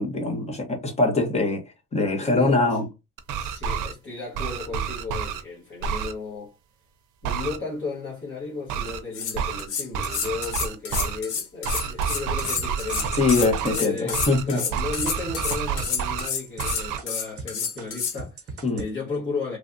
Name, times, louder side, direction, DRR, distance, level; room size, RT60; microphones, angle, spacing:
voice 1, 0.0-1.6 1.9-2.8 13.1-14.6 18.6-18.8, left 3 dB, 20° left, 0.9 m, -23 dB
voice 2, 2.2-2.8 3.3-6.5 7.2-13.2 13.7-19.6, left 4 dB, 40° left, 1.3 m, -34 dB
sound 1, 3.2-3.9 4.3-5.4 5.8-6.1 7.2-7.6 8.7-9.0 9.3-9.7 9.9-11.2 11.6-13.8 14.1-14.4 14.7-16.3 16.6-17.0, right 7 dB, 85° right, 0.6 m, -29 dB
sound 2, 8.9-9.0 9.1-18.2, left 7 dB, 75° left, 1.0 m, -29 dB
sound 3, 12.6-17.5 17.8-18.9, right 3 dB, 50° right, 0.9 m, -39 dB
3.2 x 2.3 x 2.6 m
cardioid pair, 145°, 31 cm